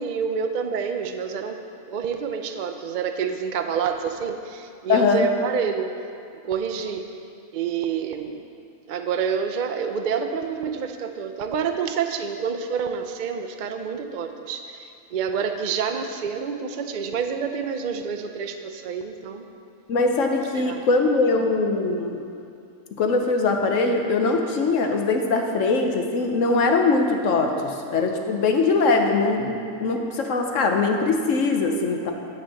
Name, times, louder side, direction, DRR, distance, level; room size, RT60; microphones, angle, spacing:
voice 1, 0.0-1.6 1.9-5.9 6.4-7.0 7.5-8.4 8.9-19.4 20.5-20.8, right 6 dB, 75° right, 6 dB, 0.4 m, -28 dB
voice 2, 4.9-5.3 19.9-22.2 23.0-32.1, left 3 dB, 60° left, 3 dB, 1.1 m, -22 dB
10.0 x 4.5 x 7.4 m, 2.5 s
omnidirectional pair, 1.6 m